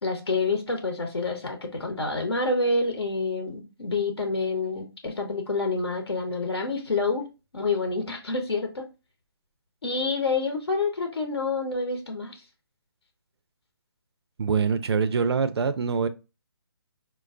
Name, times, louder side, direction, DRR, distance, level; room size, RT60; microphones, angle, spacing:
voice 1, 0.0-7.3 7.5-8.9 9.8-12.4, left 3 dB, 80° left, 0.9 m, -28 dB
voice 2, 14.4-16.1, right 5 dB, 75° right, 0.4 m, -24 dB
4.3 x 2.2 x 2.4 m
figure-of-eight pair, 150°, 14 cm